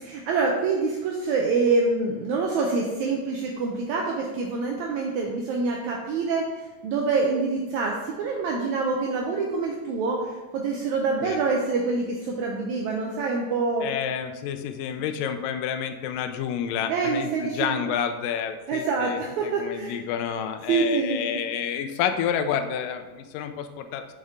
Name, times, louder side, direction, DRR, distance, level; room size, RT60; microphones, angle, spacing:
voice 1, 0.0-6.5 6.8-13.9 16.9-17.8 18.7-20.0 20.7-21.2, right 4 dB, 80° right, 0 dB, 1.7 m, -26 dB
voice 2, 13.8-24.1, left 8 dB, 85° left, 8 dB, 2.1 m, -29 dB
6.4 x 5.3 x 3.5 m, 1.2 s
omnidirectional pair, 3.9 m